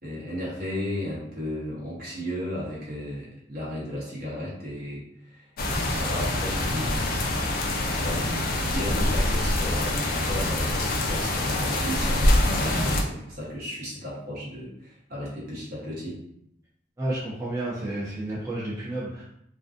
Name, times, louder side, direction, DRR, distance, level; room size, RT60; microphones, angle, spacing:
voice 1, 0.0-5.5 5.9-7.6 7.9-8.3 8.6-16.2, left 1 dB, 55° right, -6 dB, 1.0 m, -34 dB
sound 1, 5.6-13.0, left 1 dB, 50° left, 0.4 m, -25 dB
voice 2, 17.0-19.3, right 1 dB, 15° right, -7 dB, 0.4 m, -31 dB
2.5 x 2.2 x 2.4 m, 0.74 s
head